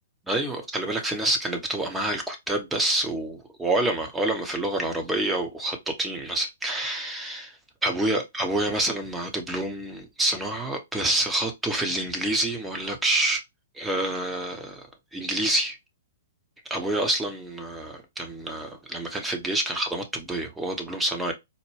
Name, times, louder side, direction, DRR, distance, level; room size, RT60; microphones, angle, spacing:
voice 1, 0.3-13.4 13.7-14.9 15.1-15.8 16.6-21.3, right 1 dB, 10° right, 0.8 m, -27 dB
4.1 x 2.2 x 3.1 m
figure-of-eight pair, 120°, 0 cm